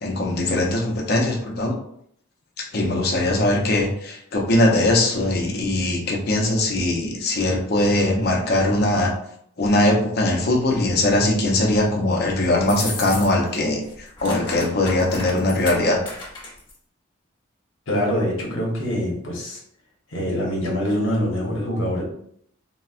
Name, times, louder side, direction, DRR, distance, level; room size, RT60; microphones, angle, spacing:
voice 1, 0.0-1.8 2.6-9.1 9.6-16.0, left 1 dB, 50° left, 0 dB, 0.6 m, -21 dB
sound 1, 12.6-13.6 13.8-16.8, left 2 dB, 25° left, 1.0 m, -34 dB
voice 2, 17.9-19.6 20.1-22.0, equal, 75° left, -3 dB, 0.9 m, -24 dB
3.9 x 2.1 x 2.4 m, 0.69 s
head